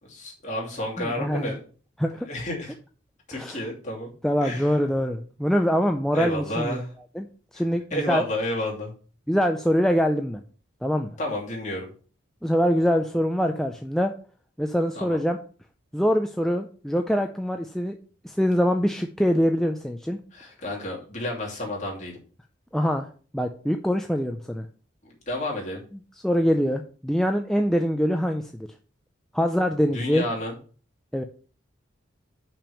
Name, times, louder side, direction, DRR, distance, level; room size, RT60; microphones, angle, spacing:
voice 1, 0.0-1.6 2.3-2.7 3.3-4.1 4.4-4.7 6.1-6.9 7.5-7.6 7.9-8.9 11.2-11.9 14.9-15.2 20.3-22.2 25.0-25.8 29.9-30.5, left 1 dB, 35° left, -2 dB, 2.7 m, -31 dB
voice 2, 1.0-1.6 2.0-2.3 3.3-3.6 4.2-6.8 7.2-7.3 7.5-8.2 9.3-10.4 10.8-11.1 12.4-14.1 14.6-15.4 15.9-18.0 18.2-20.2 22.7-23.1 23.3-24.7 26.2-28.7 29.3-30.2 31.1-31.2, equal, ahead, 4 dB, 0.4 m, -24 dB
5.9 x 5.2 x 6.8 m, 0.40 s
head